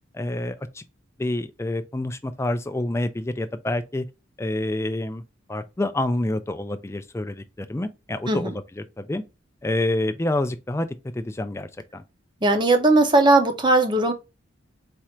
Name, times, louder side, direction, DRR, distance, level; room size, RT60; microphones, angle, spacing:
voice 1, 0.1-0.8 1.2-4.1 4.4-5.2 5.5-9.2 9.6-10.9 11.1-12.0, left 1 dB, 15° left, 0.3 m, -27 dB
voice 2, 12.4-14.1, right 2 dB, 20° right, 0.6 m, -18 dB
4.3 x 2.4 x 4.3 m
head